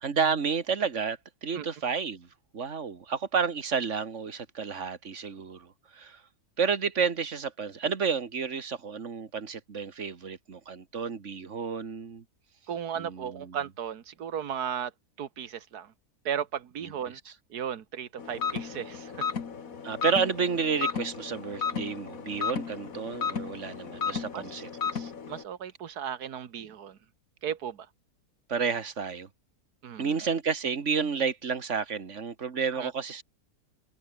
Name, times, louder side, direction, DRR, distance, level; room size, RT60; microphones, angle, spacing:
voice 1, 0.0-2.3 2.5-6.2 6.6-12.2 13.0-13.6 16.8-16.9 17.3-17.4 19.8-24.7 28.5-29.3 30.0-33.2, right 6 dB, 50° right, 2.1 m, -31 dB
voice 2, 12.7-14.9 15.2-15.9 16.3-17.2 17.5-19.2 24.3-24.6 24.9-27.0 27.4-27.9 29.8-30.1 32.7-32.9, right 8 dB, 80° right, 1.8 m, -35 dB
sound 1, 18.2-25.4, left 6 dB, 60° left, 2.1 m, -34 dB
omnidirectional pair, 1.6 m